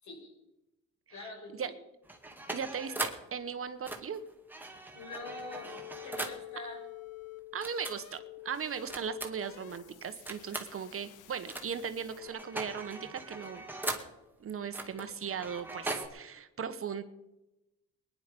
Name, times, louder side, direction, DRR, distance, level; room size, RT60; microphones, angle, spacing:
voice 1, 0.0-0.3 1.1-1.7 2.4-2.5 4.9-6.8, left 3 dB, 70° left, 1 dB, 5.8 m, -45 dB
sound 1, 2.0-3.3 3.8-6.5 7.6-8.0 8.9-9.5 10.3-10.7 11.5-11.9 12.1-14.2 14.7-16.1, right 2 dB, 5° right, 2.1 m, -40 dB
voice 2, 2.5-4.2 7.5-8.2 8.4-13.6 14.4-17.0, right 7 dB, 45° right, 10 dB, 1.3 m, -38 dB
sound 2, 5.2-12.3, left 17 dB, 85° left, 0.9 m, -49 dB
20.0 x 10.5 x 5.4 m, 0.95 s
cardioid pair, 90°, 30 cm